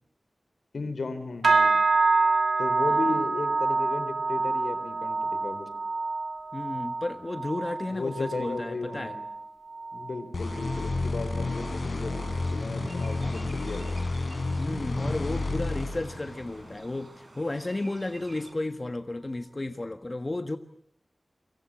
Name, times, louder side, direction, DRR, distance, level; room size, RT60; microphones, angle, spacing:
voice 1, 0.7-1.8 2.6-5.7 7.9-9.3 9.9-14.0, left 3 dB, 85° left, 11 dB, 4.1 m, -35 dB
sound 1, 1.4-11.0 11.3-11.7 12.1-12.5 13.0-13.1, right 3 dB, 80° right, 1.4 m, -27 dB
voice 2, 6.5-9.1 13.2-13.3 14.6-20.6, left 2 dB, 35° left, 8 dB, 1.5 m, -33 dB
sound 2, 10.3-16.8, left 3 dB, 65° left, 5.7 m, -31 dB
sound 3, 11.7-18.5, right 2 dB, 50° right, 4.9 m, -45 dB
29.5 x 24.5 x 7.7 m, 0.67 s
wide cardioid pair, 80°, 0 cm